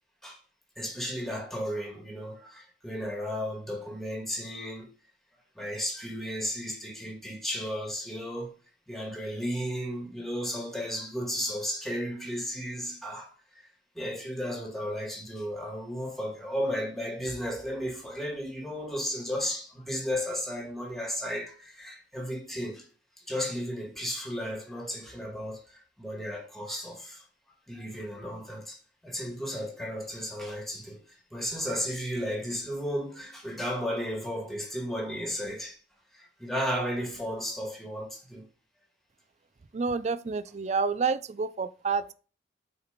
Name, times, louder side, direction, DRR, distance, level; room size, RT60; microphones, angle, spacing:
voice 1, 0.8-4.9 5.6-8.5 8.9-22.9 23.2-27.3 27.7-28.8 29.0-35.8 36.1-38.4, equal, ahead, 1.9 m, -34 dB
voice 2, 39.7-42.1, right 5 dB, 35° right, 0.4 m, -29 dB
6.2 x 4.9 x 5.1 m
head